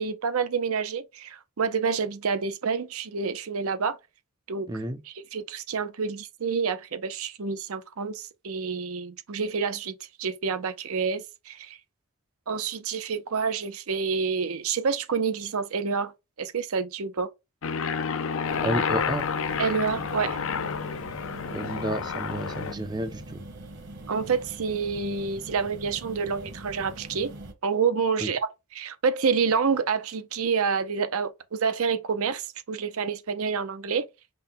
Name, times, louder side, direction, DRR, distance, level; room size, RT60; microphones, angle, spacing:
voice 1, 0.0-4.0 4.5-4.7 5.3-11.8 12.5-16.1 16.4-17.3 19.6-20.4 24.1-27.3 27.6-28.4 28.7-34.1, right 5 dB, 75° right, 0.6 m, -28 dB
voice 2, 4.7-5.0 18.6-19.3 21.5-23.4 28.2-28.3, right 1 dB, 20° right, 0.4 m, -31 dB
Aircraft, 17.6-22.7, left 6 dB, 65° left, 0.5 m, -30 dB
sound 1, 18.4-27.5, right 1 dB, 55° right, 1.2 m, -43 dB
5.4 x 2.2 x 3.8 m
head